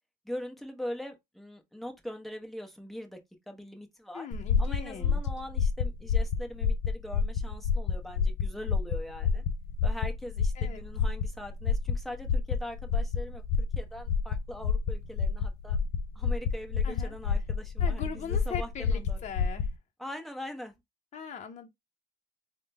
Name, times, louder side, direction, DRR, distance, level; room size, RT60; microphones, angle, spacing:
voice 1, 0.2-3.2 3.5-4.3 4.6-9.4 9.8-15.8 16.1-19.2 20.0-20.7, left 1 dB, ahead, 0.9 m, -42 dB
voice 2, 4.1-5.2 10.6-10.8 16.8-17.2 17.8-19.7 21.1-21.7, left 7 dB, 45° left, 0.7 m, -40 dB
sound 1, 4.3-19.7, left 5 dB, 90° left, 0.5 m, -29 dB
3.7 x 2.2 x 3.3 m
cardioid pair, 110°, 17 cm